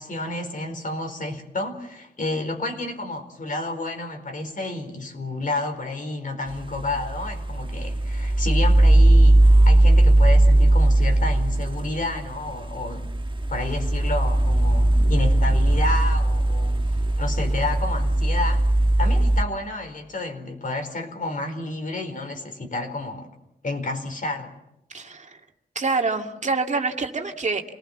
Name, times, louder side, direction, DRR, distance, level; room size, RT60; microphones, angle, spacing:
voice 1, 0.0-13.1 13.5-16.8 17.2-18.7 19.0-23.3 23.6-24.5, left 2 dB, 55° left, 5 dB, 4.6 m, -30 dB
sound 1, 6.5-19.4, right 1 dB, 30° right, 1.3 m, -19 dB
voice 2, 24.9-25.4 25.8-27.6, right 4 dB, 45° right, 4 dB, 2.3 m, -26 dB
28.0 x 19.5 x 7.3 m, 0.86 s
cardioid pair, 75°, 17 cm